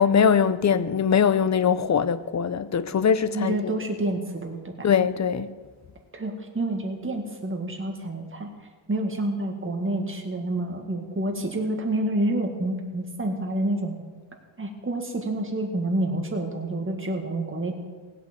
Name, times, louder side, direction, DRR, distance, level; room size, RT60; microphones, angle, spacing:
voice 1, 0.0-3.8 4.8-5.5, left 7 dB, 35° left, 0.6 m, -22 dB
voice 2, 3.3-4.7 6.1-8.5 8.9-14.0 14.6-17.8, right 1 dB, 25° right, 1.9 m, -28 dB
17.0 x 8.1 x 6.8 m
wide cardioid pair, 125°, 48 cm